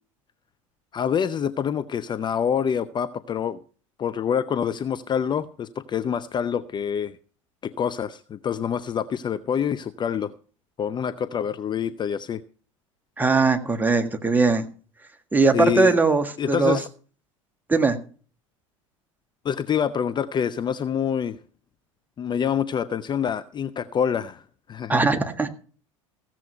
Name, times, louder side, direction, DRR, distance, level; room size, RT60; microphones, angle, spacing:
voice 1, 0.9-3.6 4.0-7.2 7.6-10.3 10.8-12.4 15.5-16.0 16.4-16.9 19.4-21.4 22.2-25.0, left 8 dB, 25° left, 0.6 m, -26 dB
voice 2, 13.2-14.6 15.3-16.8 17.7-18.0 24.9-25.5, right 3 dB, 10° right, 1.6 m, -20 dB
15.5 x 7.5 x 5.6 m
figure-of-eight pair, 75°, 17 cm